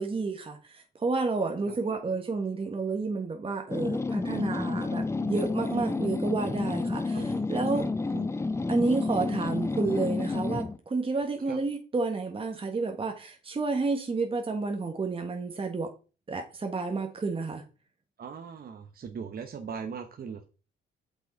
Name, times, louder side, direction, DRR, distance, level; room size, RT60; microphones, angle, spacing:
voice 1, 0.0-7.9 8.7-15.9 16.3-17.6, right 3 dB, 25° right, 1.3 m, -30 dB
voice 2, 1.7-2.0 5.2-5.5 7.1-7.5 7.7-7.8 8.1-8.3 11.5-11.6 18.2-20.4, right 6 dB, 50° right, 1.1 m, -40 dB
sound 1, 3.7-10.8, left 3 dB, 15° left, 0.5 m, -30 dB
8.0 x 6.3 x 4.0 m
cardioid pair, 90°, 20 cm